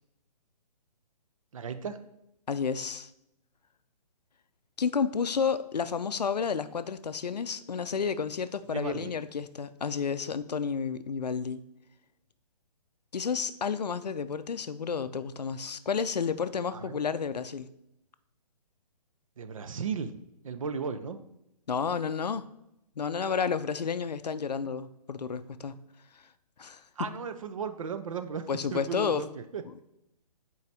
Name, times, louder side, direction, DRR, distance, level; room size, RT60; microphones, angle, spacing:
voice 1, 1.5-2.0 8.7-9.1 16.7-17.0 19.4-20.1 20.4-21.2 27.0-29.6, right 6 dB, 50° right, 10 dB, 0.6 m, -35 dB
voice 2, 2.5-3.1 4.8-11.6 13.1-17.7 21.7-22.4 23.0-25.8 26.6-27.1 28.5-29.3 29.6-29.8, left 6 dB, 75° left, 13 dB, 0.5 m, -31 dB
8.0 x 4.6 x 3.4 m, 0.83 s
figure-of-eight pair, 135°, 21 cm